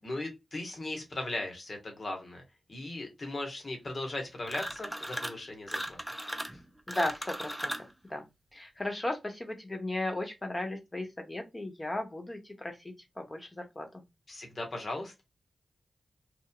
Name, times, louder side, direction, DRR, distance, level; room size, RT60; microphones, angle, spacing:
voice 1, 0.0-2.4 2.7-6.6 14.3-15.2, left 2 dB, 55° left, 1.3 m, -38 dB
sound 1, 4.4-5.4 5.7-7.9, equal, 5° right, 0.6 m, -37 dB
voice 2, 6.9-7.7 8.0-8.3 8.5-14.0, left 1 dB, 30° left, 1.2 m, -36 dB
3.0 x 2.3 x 2.3 m
cardioid pair, 45°, 0 cm